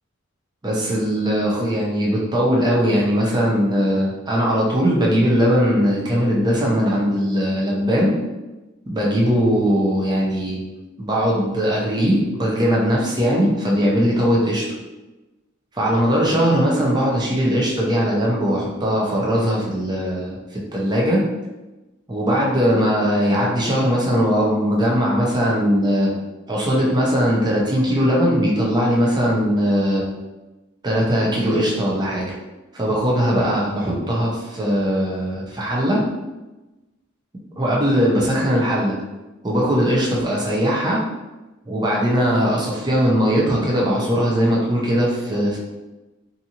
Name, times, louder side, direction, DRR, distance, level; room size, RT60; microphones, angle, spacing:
voice 1, 0.6-8.1 8.9-10.6 11.0-14.6 15.8-20.4 20.7-21.2 22.1-26.1 26.5-30.0 30.8-32.3 32.7-36.0 37.6-38.9 39.4-41.0 41.7-45.6, equal, 20° right, -4 dB, 0.6 m, -19 dB
2.6 x 2.5 x 2.8 m, 1.1 s
head